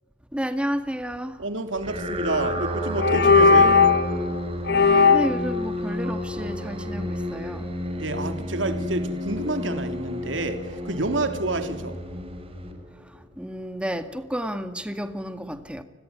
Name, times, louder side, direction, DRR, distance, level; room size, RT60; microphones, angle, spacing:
voice 1, 0.3-1.4 5.1-7.7 13.0-15.8, equal, 5° right, 2.1 m, -31 dB
voice 2, 1.4-3.9 8.0-12.0, right 2 dB, 85° right, 3.2 m, -29 dB
sound 1, 1.8-13.2, equal, 30° right, 5.9 m, -31 dB
sound 2, 2.3-2.6 3.0-4.1 4.7-5.4, left 4 dB, 60° left, 1.5 m, -17 dB
30.0 x 21.0 x 9.5 m
head